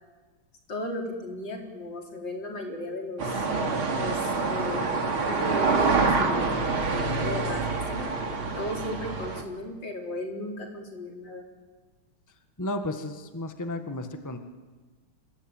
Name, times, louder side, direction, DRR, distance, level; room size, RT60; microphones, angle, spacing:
voice 1, 0.7-3.5 4.0-8.1 8.6-11.4, left 1 dB, 60° left, 1 dB, 4.9 m, -35 dB
sound 1, 3.2-9.4, right 4 dB, 75° right, 3.5 m, -26 dB
voice 2, 12.6-14.4, left 1 dB, 10° left, 6 dB, 1.5 m, -33 dB
26.5 x 22.0 x 9.1 m, 1.3 s
omnidirectional pair, 2.3 m